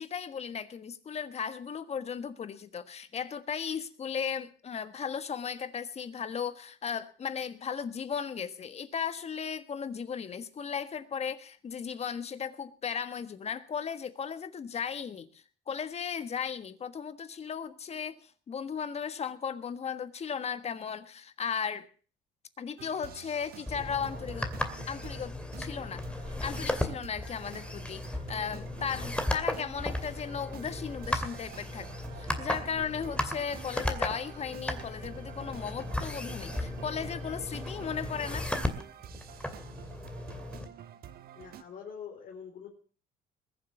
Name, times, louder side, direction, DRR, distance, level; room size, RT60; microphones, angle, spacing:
voice 1, 0.0-21.9 22.6-24.5 24.9-31.9 32.1-38.5, left 7 dB, 40° left, 12 dB, 1.5 m, -36 dB
sound 1, 22.8-41.6, right 10 dB, 65° right, 1.3 m, -49 dB
sound 2, 23.7-40.6, left 1 dB, 5° left, 2.4 m, -36 dB
voice 2, 41.3-42.7, left 7 dB, 55° left, -1 dB, 4.2 m, -44 dB
21.0 x 7.7 x 7.0 m, 0.41 s
cardioid pair, 110°, 17 cm